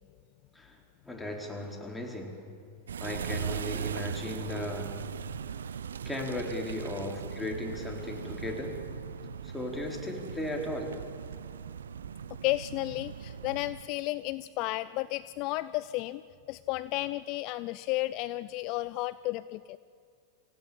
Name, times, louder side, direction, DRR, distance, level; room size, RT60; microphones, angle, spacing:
voice 1, 1.0-2.5 3.0-5.0 6.0-8.8 9.4-11.0, left 1 dB, 5° left, 1 dB, 4.4 m, -36 dB
sound 1, 2.9-13.9, right 7 dB, 80° right, 0.5 m, -39 dB
voice 2, 12.4-16.2 16.5-19.8, left 18 dB, 50° left, 16 dB, 0.5 m, -33 dB
26.5 x 16.5 x 8.8 m, 2.3 s
hypercardioid pair, 100°, 0 cm